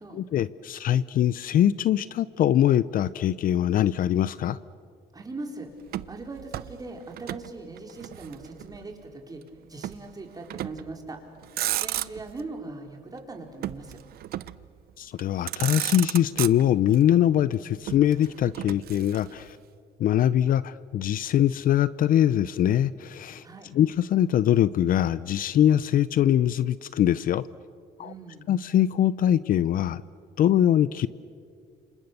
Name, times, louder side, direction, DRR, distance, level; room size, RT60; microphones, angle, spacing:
voice 1, 0.1-4.6 15.0-19.6 20.0-23.4 23.7-27.4 28.0-28.1 28.5-30.0 30.4-31.1, left 11 dB, 55° left, 17 dB, 0.6 m, -22 dB
voice 2, 5.1-5.7 6.1-9.4 9.7-11.2 11.8-14.0 23.4-23.7 28.0-28.5, right 3 dB, 20° right, 3 dB, 4.3 m, -40 dB
Motor vehicle (road), 5.9-7.5 7.8-8.8 9.8-10.1 10.5-10.9 11.4-12.4 13.6-14.7 15.2-15.3 15.5-17.0 17.9-19.5, right 14 dB, 65° right, 0.7 m, -33 dB
30.0 x 27.0 x 6.8 m, 2.3 s
cardioid pair, 110°, 17 cm